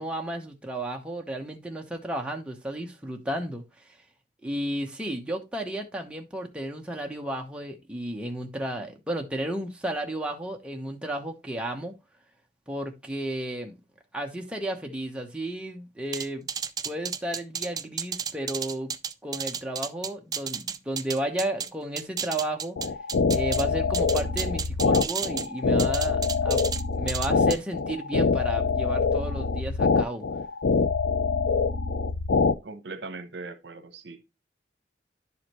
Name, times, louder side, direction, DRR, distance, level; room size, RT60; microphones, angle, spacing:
voice 1, 0.0-3.9 4.4-11.9 12.7-13.8 14.1-16.5 16.8-18.9 19.2-22.8 23.3-26.6 26.9-30.2, right 1 dB, 5° right, 1.0 m, -33 dB
sound 1, 16.1-21.7 22.0-23.6 23.9-25.5 25.8-26.8 27.1-27.6, right 7 dB, 20° right, 0.4 m, -32 dB
sound 2, 22.8-32.5, left 4 dB, 85° left, 0.5 m, -24 dB
voice 2, 32.6-34.4, right 3 dB, 75° right, 0.9 m, -40 dB
11.0 x 4.9 x 3.0 m
head